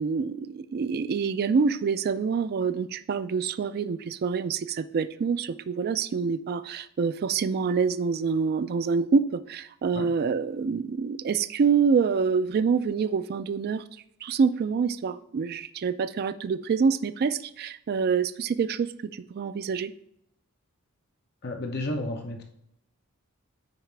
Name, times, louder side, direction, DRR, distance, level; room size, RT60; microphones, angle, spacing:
voice 1, 0.0-13.8 14.2-19.9, right 5 dB, 45° right, 13 dB, 0.3 m, -26 dB
voice 2, 21.4-22.4, left 1 dB, 50° left, 4 dB, 0.7 m, -32 dB
9.5 x 4.1 x 3.3 m, 0.76 s
head